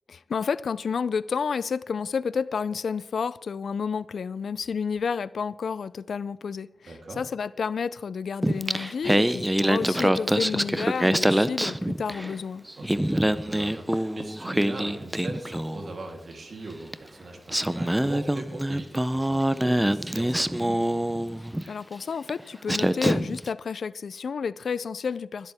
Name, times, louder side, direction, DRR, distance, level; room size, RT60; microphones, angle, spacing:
voice 1, 0.1-12.6 21.7-25.5, left 6 dB, 80° left, 0.4 m, -30 dB
voice 2, 6.9-7.2 12.8-20.6, right 2 dB, 60° right, 3.2 m, -40 dB
Singing, 8.4-12.4 12.7-15.9 16.9-17.0 17.5-21.7 22.3-22.4 22.7-23.5, right 1 dB, 10° right, 0.6 m, -25 dB
20.5 x 12.0 x 3.5 m
wide cardioid pair, 95°, 0 cm